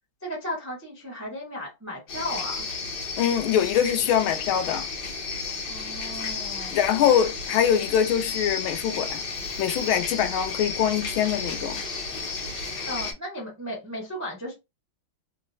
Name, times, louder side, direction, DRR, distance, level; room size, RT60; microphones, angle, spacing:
voice 1, 0.2-2.7 5.7-6.8 12.8-14.5, equal, 25° right, 0.3 m, -35 dB
sound 1, 2.1-13.1, left 4 dB, 65° left, 1.5 m, -33 dB
voice 2, 3.2-4.9 6.7-9.2 9.6-11.8, left 9 dB, 90° left, 1.4 m, -23 dB
3.6 x 2.0 x 2.6 m
omnidirectional pair, 2.2 m